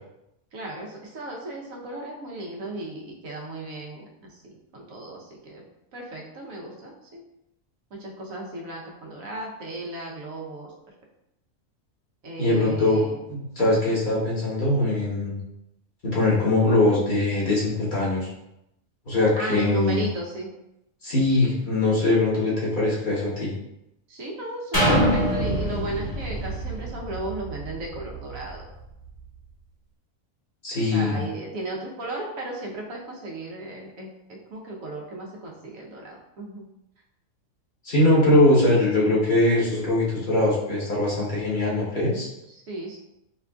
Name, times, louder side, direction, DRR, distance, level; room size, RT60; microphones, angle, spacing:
voice 1, 0.5-5.6 5.9-7.2 7.9-10.7 12.2-13.2 13.6-13.9 19.4-20.5 24.1-28.7 30.9-36.7 42.5-43.0, right 2 dB, 85° right, -1 dB, 1.2 m, -35 dB
voice 2, 12.4-13.0 13.3-15.4 16.0-18.3 19.1-20.1 21.0-23.5 30.6-31.2 37.8-42.3, left 2 dB, 40° left, -7 dB, 1.1 m, -22 dB
sound 1, 24.7-28.5 29.0-29.1, equal, 15° left, 0.9 m, -25 dB
5.1 x 2.5 x 2.3 m, 0.85 s
omnidirectional pair, 1.4 m